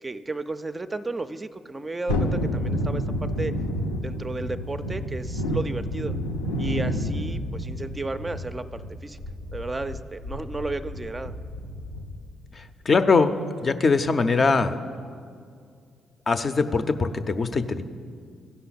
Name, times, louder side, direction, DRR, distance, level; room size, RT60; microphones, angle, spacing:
voice 1, 0.0-3.5 4.0-6.1 6.6-9.2 9.5-11.3, right 2 dB, 25° right, 10 dB, 0.4 m, -33 dB
Thunderstorm, 2.1-12.3 12.6-12.7, equal, 85° left, 0.5 m, -30 dB
voice 2, 12.5-13.3 13.6-14.8 16.3-17.8, left 4 dB, 40° left, 9 dB, 0.5 m, -22 dB
15.5 x 5.7 x 4.0 m, 2.2 s
figure-of-eight pair, 40°, 0 cm